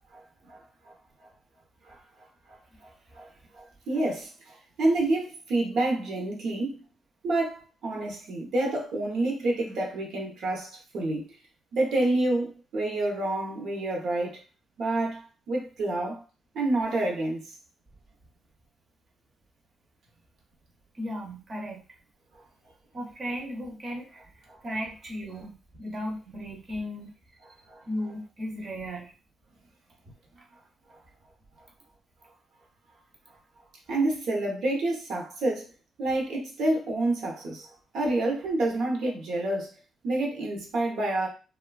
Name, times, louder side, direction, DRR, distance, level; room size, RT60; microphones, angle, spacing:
voice 1, 0.5-0.9 1.8-2.0 2.5-3.3 3.5-6.8 7.2-11.4 11.7-14.4 14.8-16.2 16.5-17.6 22.3-22.4 24.5-24.6 27.7-27.8 33.9-35.6 36.0-37.7 37.9-39.7 40.0-41.3, right 2 dB, 70° right, 0.8 m, -28 dB
voice 2, 20.9-21.8 22.9-27.1 27.9-29.1, equal, 30° right, 0.6 m, -36 dB
3.0 x 2.2 x 2.3 m
cardioid pair, 165°, 0 cm